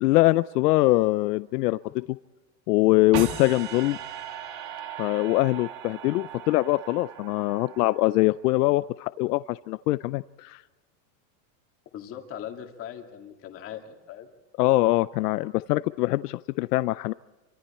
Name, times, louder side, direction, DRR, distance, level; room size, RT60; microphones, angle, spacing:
voice 1, 0.0-2.0 2.7-4.0 5.0-10.6 14.6-17.1, left 18 dB, 70° left, 16 dB, 0.6 m, -23 dB
sound 1, 3.1-8.3, right 9 dB, 40° right, 2.2 m, -38 dB
voice 2, 11.9-14.3, left 10 dB, 25° left, 4 dB, 2.1 m, -40 dB
27.5 x 25.5 x 4.3 m, 1.2 s
supercardioid pair, 170°, 50 cm